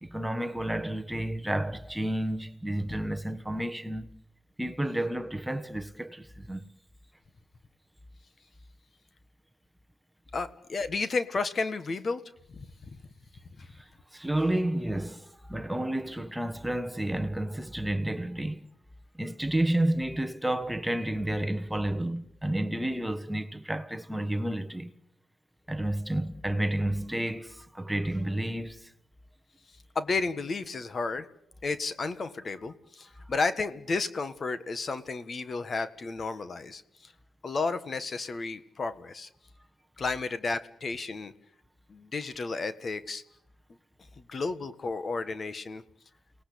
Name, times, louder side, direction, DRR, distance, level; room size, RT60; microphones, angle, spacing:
voice 1, 0.0-4.1 4.6-6.6 13.7-18.6 19.1-24.9 25.7-28.9, right 1 dB, 5° right, 1.4 m, -31 dB
voice 2, 10.3-12.2 12.5-13.0 13.6-13.7 29.9-31.3 31.6-37.1 37.4-39.3 40.0-41.3 41.9-43.2 44.2-45.8, left 3 dB, 40° left, 1.6 m, -32 dB
29.5 x 19.0 x 8.6 m
cardioid pair, 95°, 0 cm